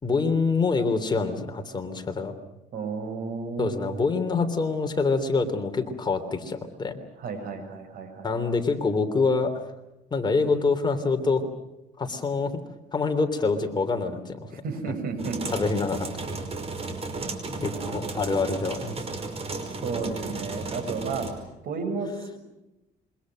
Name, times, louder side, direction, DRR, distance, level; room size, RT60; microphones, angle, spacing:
voice 1, 0.0-2.3 3.6-7.0 8.2-9.5 10.1-11.5 12.0-12.6 12.9-14.5 15.5-16.1 17.6-19.0, left 4 dB, 25° left, 6 dB, 3.2 m, -26 dB
voice 2, 2.7-4.0 7.2-8.3 14.5-15.4 17.7-18.0 19.8-21.3 21.6-22.4, right 4 dB, 60° right, 7 dB, 7.2 m, -32 dB
sound 1, 15.2-21.3, right 3 dB, 35° right, 5.2 m, -34 dB
27.0 x 24.5 x 6.4 m, 0.95 s
cardioid pair, 110°, 17 cm